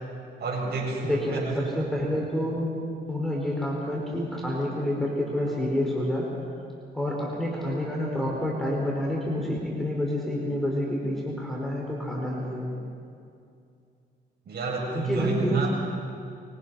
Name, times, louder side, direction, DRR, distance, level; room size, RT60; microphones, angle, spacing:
voice 1, 0.4-1.6 14.5-15.7, right 4 dB, 55° right, -1 dB, 7.6 m, -29 dB
voice 2, 1.0-2.7 3.1-6.3 6.9-12.7 14.9-15.7, left 1 dB, ahead, -4 dB, 5.3 m, -28 dB
24.5 x 24.0 x 5.9 m, 2.4 s
cardioid pair, 90°, 20 cm